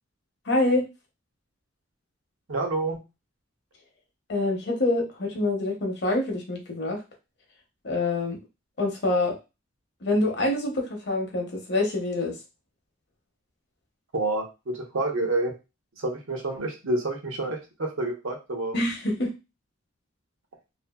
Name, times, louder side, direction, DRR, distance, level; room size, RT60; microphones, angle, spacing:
voice 1, 0.5-0.9 4.3-7.0 7.8-8.4 8.8-9.4 10.0-12.3 18.7-19.3, left 2 dB, 55° left, 1 dB, 0.7 m, -26 dB
voice 2, 2.5-3.0 14.1-15.5 16.0-18.8, right 2 dB, 80° right, 2 dB, 0.7 m, -28 dB
2.6 x 2.5 x 2.2 m, 0.27 s
head